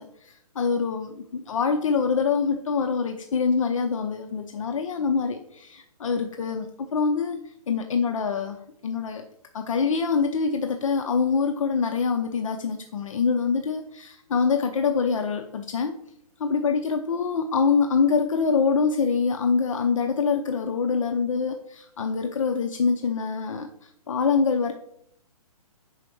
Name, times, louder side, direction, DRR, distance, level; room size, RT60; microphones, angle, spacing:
voice 1, 0.0-8.6 8.8-9.3 9.5-16.0 16.4-24.7, left 5 dB, 55° left, 5 dB, 0.6 m, -25 dB
5.3 x 4.9 x 6.2 m, 0.74 s
hypercardioid pair, 155°, 19 cm